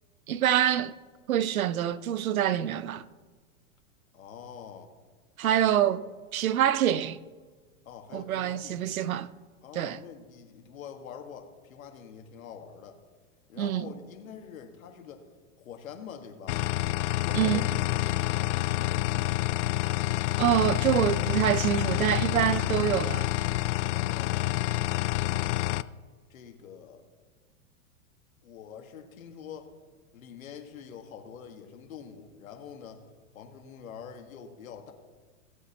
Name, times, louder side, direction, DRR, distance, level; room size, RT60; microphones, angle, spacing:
voice 1, 0.3-0.9 1.3-3.0 5.4-6.0 6.3-7.2 8.1-9.3 9.8-10.0 13.6-13.9 17.3-17.6 20.4-23.3, right 11 dB, 90° right, 0.7 m, -26 dB
voice 2, 4.1-4.9 5.4-5.6 7.9-8.9 9.6-13.0 13.5-15.3 15.6-16.6 17.1-19.1 23.9-24.6 25.4-26.0 26.3-27.0 28.4-29.7 30.1-33.0 33.3-34.9, left 7 dB, 75° left, 1.8 m, -45 dB
sound 1, 16.5-25.8, left 17 dB, 60° left, 0.5 m, -28 dB
17.5 x 8.1 x 3.0 m
hypercardioid pair, 120°, 41 cm